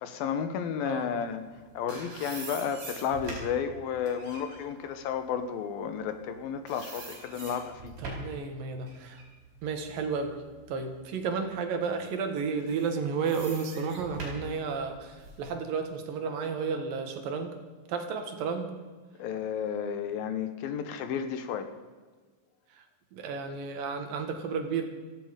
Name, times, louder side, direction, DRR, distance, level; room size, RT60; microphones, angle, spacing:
voice 1, 0.0-1.4 1.7-7.9 19.2-21.7, left 7 dB, 75° left, 9 dB, 2.8 m, -32 dB
sound 1, 1.5-6.4 6.7-8.4 8.9-10.8 11.3-11.4 12.5-15.5, right 2 dB, 55° right, 6.0 m, -44 dB
voice 2, 8.0-9.2 9.6-10.4 10.7-17.5 17.9-18.7 22.7-22.8 23.1-24.8, right 5 dB, 70° right, 6 dB, 3.1 m, -32 dB
17.0 x 14.5 x 5.1 m, 1.4 s
omnidirectional pair, 4.4 m